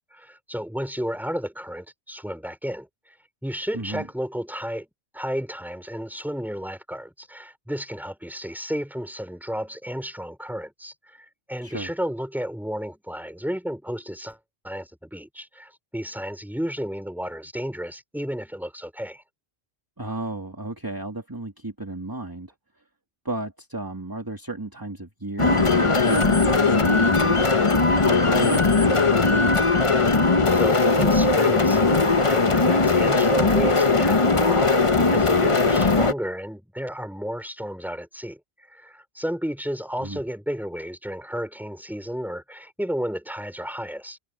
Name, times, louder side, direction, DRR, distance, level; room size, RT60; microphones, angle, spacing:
voice 1, 0.0-2.9 3.4-4.9 5.1-14.4 14.6-19.2 30.5-38.4 38.7-44.2, equal, ahead, 4.0 m, -32 dB
voice 2, 3.7-4.0 11.6-11.9 20.0-22.5 23.2-27.7 28.0-29.1 40.0-40.2, right 2 dB, 20° right, 2.4 m, -33 dB
sound 1, 25.4-36.1, left 3 dB, 30° left, 1.1 m, -19 dB
omnidirectional pair, 1.2 m